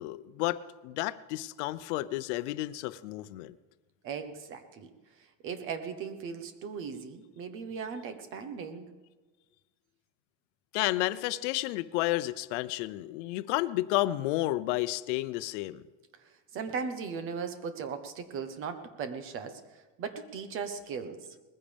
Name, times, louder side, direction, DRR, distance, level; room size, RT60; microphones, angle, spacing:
voice 1, 0.0-3.5 10.7-15.8, left 17 dB, 85° left, 15 dB, 0.7 m, -31 dB
voice 2, 4.0-4.9 5.4-8.9 16.5-19.6 20.0-21.2, right 6 dB, 35° right, 9 dB, 1.1 m, -37 dB
20.0 x 15.0 x 3.5 m, 1.3 s
cardioid pair, 180°, 35 cm